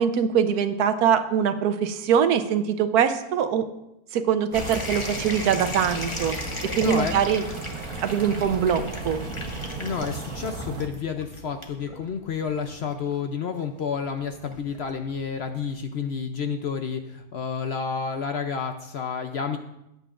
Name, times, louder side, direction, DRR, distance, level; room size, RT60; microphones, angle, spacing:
voice 1, 0.0-3.7 4.1-6.3 6.8-7.4 8.0-9.2, right 8 dB, 90° right, 10 dB, 1.2 m, -23 dB
sound 1, 4.5-15.8, left 2 dB, 20° left, 1.0 m, -38 dB
sound 2, 4.5-10.9, right 3 dB, 70° right, 1.5 m, -35 dB
voice 2, 6.8-7.2 9.8-19.6, left 6 dB, 60° left, 6 dB, 0.7 m, -30 dB
18.0 x 8.1 x 2.5 m, 0.87 s
omnidirectional pair, 1.6 m